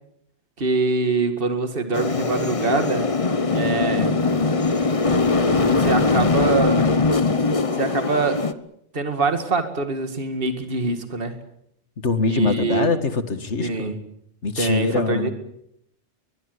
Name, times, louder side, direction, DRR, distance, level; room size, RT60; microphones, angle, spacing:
voice 1, 0.6-3.0 3.5-4.2 5.6-6.9 7.8-8.4 8.9-11.4 12.3-12.9 13.6-14.0 14.6-15.3, right 3 dB, 50° right, 7 dB, 2.3 m, -24 dB
sound 1, 1.9-8.5, left 3 dB, 30° left, 1.1 m, -21 dB
voice 2, 12.0-14.0 14.4-15.3, left 4 dB, 75° left, 10 dB, 2.2 m, -23 dB
23.0 x 21.5 x 8.1 m, 0.75 s
omnidirectional pair, 1.2 m